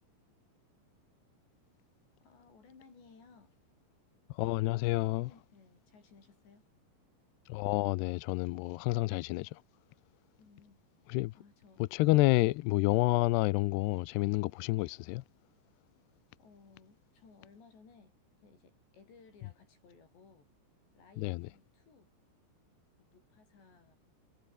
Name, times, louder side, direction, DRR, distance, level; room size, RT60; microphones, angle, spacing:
voice 1, 2.2-3.6 5.3-6.7 10.4-10.8 11.3-11.8 16.4-18.1 18.4-20.5 20.9-22.1 23.0-24.0, left 5 dB, 65° left, 9.5 m, -60 dB
voice 2, 4.3-5.3 7.5-9.6 11.1-11.3 11.9-15.2 21.2-21.4, left 20 dB, 85° left, 2.4 m, -29 dB
omnidirectional pair, 5.5 m